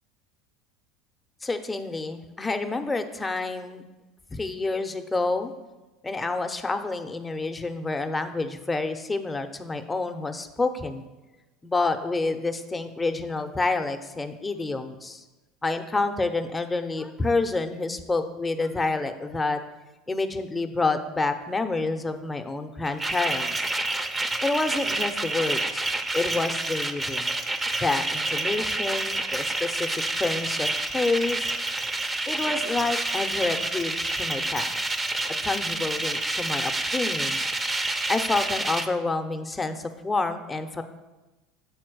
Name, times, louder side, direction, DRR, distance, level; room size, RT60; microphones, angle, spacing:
voice 1, 1.4-3.8 4.3-5.5 6.0-11.1 11.6-15.2 15.6-19.6 20.1-23.5 24.4-25.9 26.1-27.4 27.8-29.9 30.2-31.5 32.3-34.9 35.4-37.4 38.1-40.8, left 3 dB, 15° left, 6 dB, 0.7 m, -28 dB
sound 1, 22.8-38.9, right 2 dB, 15° right, 0.7 m, -28 dB
7.1 x 4.4 x 6.2 m, 1.1 s
hypercardioid pair, 75°, 0 cm